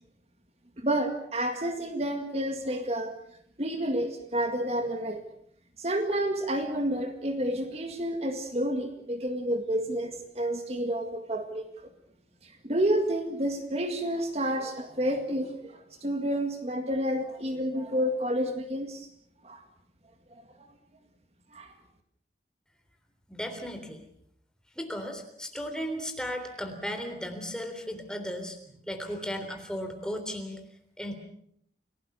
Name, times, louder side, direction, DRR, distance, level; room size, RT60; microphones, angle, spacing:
voice 1, 0.8-3.1 3.6-5.2 5.8-11.6 12.6-19.1 19.4-19.6 21.5-21.7, right 1 dB, 35° right, 6 dB, 2.0 m, -29 dB
voice 2, 23.3-24.0 24.8-28.6 28.9-30.6 31.0-31.1, equal, 5° left, 5 dB, 3.5 m, -35 dB
29.0 x 18.5 x 6.9 m, 0.69 s
head